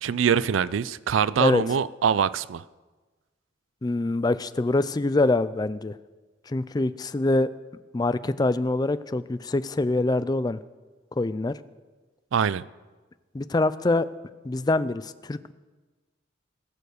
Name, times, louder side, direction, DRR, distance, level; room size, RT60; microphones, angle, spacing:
voice 1, 0.0-2.6 12.3-12.6, right 7 dB, 80° right, 18 dB, 0.4 m, -24 dB
voice 2, 3.8-6.0 6.5-7.5 7.9-10.6 11.2-11.6 13.3-14.1 14.4-15.5, left 2 dB, 20° left, 15 dB, 0.4 m, -24 dB
20.5 x 7.0 x 6.4 m, 1.3 s
head